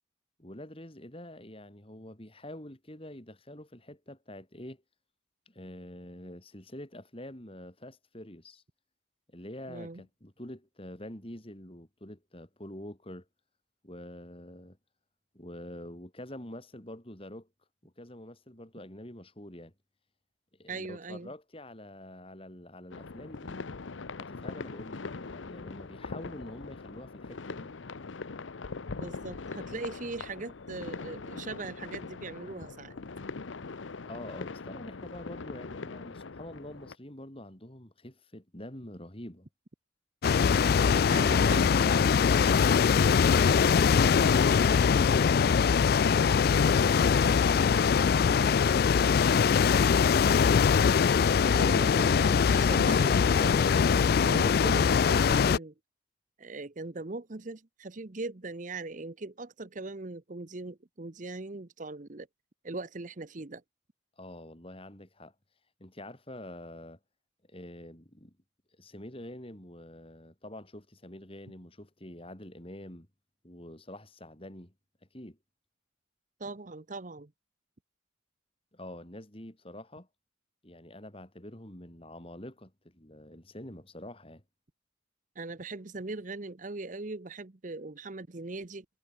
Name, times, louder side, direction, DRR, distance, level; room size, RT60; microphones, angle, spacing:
voice 1, 0.4-4.8 5.5-8.6 9.3-13.3 13.8-14.8 15.3-17.5 17.8-19.7 20.6-23.6 24.2-27.7 34.0-39.5 64.2-65.3 65.8-67.0 67.5-68.3 68.8-73.1 73.4-74.7 75.1-75.4 78.7-80.1 80.6-84.4, left 1 dB, 30° left, 3.4 m, -46 dB
voice 2, 9.7-10.0 20.7-21.3 29.0-33.0 41.1-42.3 51.5-55.7 56.4-62.3 62.6-63.6 76.4-77.3 85.4-88.8, right 3 dB, 40° right, 0.9 m, -40 dB
sound 1, 22.9-37.0, left 4 dB, 80° left, 0.8 m, -41 dB
sound 2, 40.2-55.6, left 6 dB, 50° left, 0.3 m, -22 dB
head